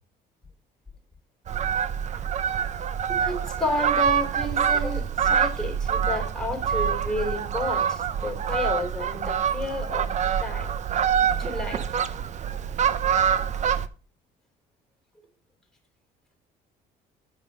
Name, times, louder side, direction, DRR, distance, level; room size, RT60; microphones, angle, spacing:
Fowl, 1.5-13.9, right 8 dB, 45° right, 0.6 m, -25 dB
voice 1, 3.1-10.1 10.4-10.7 11.4-12.1, left 2 dB, 5° left, 3.3 m, -31 dB
9.3 x 5.3 x 5.4 m
cardioid pair, 110°, 17 cm